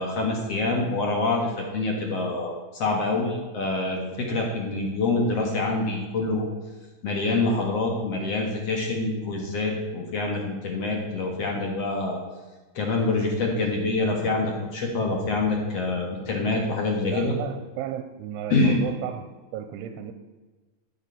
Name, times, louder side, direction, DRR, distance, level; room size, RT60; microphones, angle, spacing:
voice 1, 0.0-6.5 7.0-12.2 12.7-17.3 18.5-18.8, left 3 dB, 65° left, 0 dB, 1.5 m, -26 dB
voice 2, 17.1-19.3 19.5-20.1, right 10 dB, 90° right, 8 dB, 3.1 m, -34 dB
13.5 x 8.8 x 5.7 m, 1.2 s
omnidirectional pair, 5.4 m